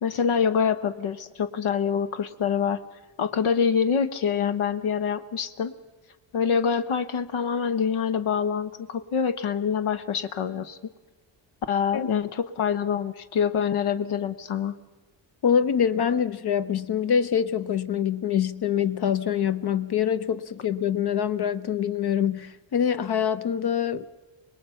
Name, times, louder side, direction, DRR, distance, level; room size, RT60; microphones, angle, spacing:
voice 1, 0.0-2.8 3.2-5.7 6.3-10.8 11.7-14.7, left 7 dB, 80° left, 1.1 m, -25 dB
voice 2, 15.4-24.1, left 8 dB, 50° left, 0.8 m, -25 dB
25.5 x 20.5 x 5.6 m
wide cardioid pair, 165°, 49 cm